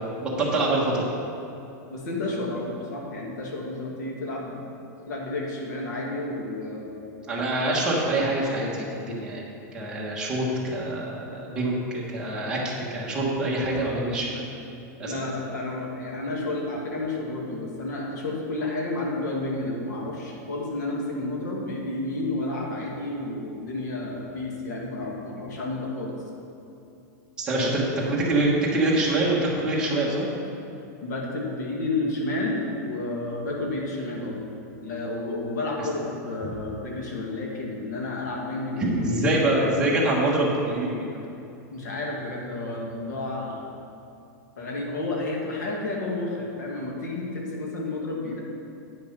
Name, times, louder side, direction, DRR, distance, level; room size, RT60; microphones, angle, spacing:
voice 1, 0.2-1.1 7.3-14.5 15.0-15.1 27.4-30.3 35.8-35.9 38.8-41.1, right 1 dB, 10° right, -6 dB, 1.3 m, -25 dB
voice 2, 1.9-4.6 5.1-7.2 15.0-26.2 27.5-27.8 31.0-34.4 34.8-39.3 41.7-43.7 44.6-48.4, left 2 dB, 85° left, -1 dB, 2.0 m, -31 dB
8.9 x 5.9 x 5.4 m, 2.7 s
supercardioid pair, 175°, 9 cm